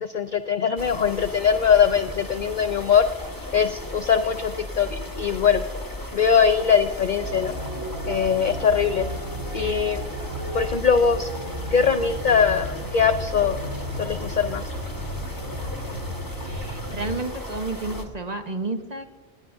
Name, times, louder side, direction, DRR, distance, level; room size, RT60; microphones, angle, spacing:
voice 1, 0.0-3.0 3.5-5.6 6.1-7.5 8.1-9.1 9.5-10.1 10.5-11.3 11.7-13.6 14.0-14.6, left 7 dB, 50° left, 9 dB, 0.6 m, -21 dB
sound 1, 0.8-18.1, left 1 dB, 15° left, 1.7 m, -36 dB
sound 2, 7.2-17.2, equal, 85° right, 4.5 m, -34 dB
voice 2, 16.4-19.0, right 3 dB, 35° right, 5 dB, 1.4 m, -31 dB
30.0 x 18.0 x 2.7 m, 1.2 s
omnidirectional pair, 1.3 m